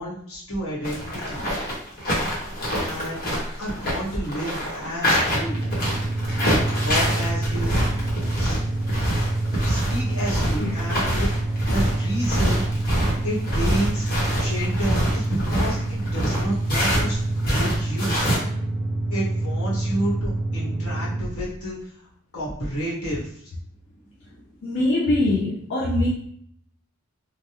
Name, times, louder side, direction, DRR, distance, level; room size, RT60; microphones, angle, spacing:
voice 1, 0.0-1.5 2.8-3.3 3.6-5.6 6.6-7.7 8.3-8.6 9.6-11.3 11.7-12.6 13.2-14.1 14.4-17.2 17.4-18.2 19.1-21.9 22.3-23.5 24.2-24.4, equal, 85° left, -6 dB, 1.3 m, -30 dB
sound 1, 0.8-17.1 17.4-18.4, equal, 40° left, 1.0 m, -25 dB
sound 2, 5.3-21.4, right 2 dB, 5° right, 0.3 m, -27 dB
voice 2, 24.6-26.1, left 1 dB, 60° left, -4 dB, 0.5 m, -22 dB
3.3 x 2.2 x 2.8 m, 0.66 s
head